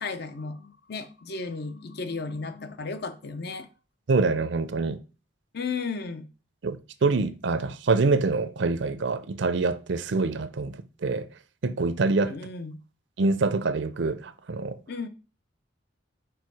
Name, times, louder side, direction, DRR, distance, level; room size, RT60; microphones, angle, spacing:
voice 1, 0.0-3.7 5.5-6.3 12.3-12.8 14.9-15.1, left 4 dB, 55° left, 0.6 m, -34 dB
voice 2, 4.1-5.0 6.6-11.3 11.6-12.3 13.2-14.8, right 3 dB, 65° right, 0.5 m, -25 dB
4.7 x 4.5 x 4.7 m
head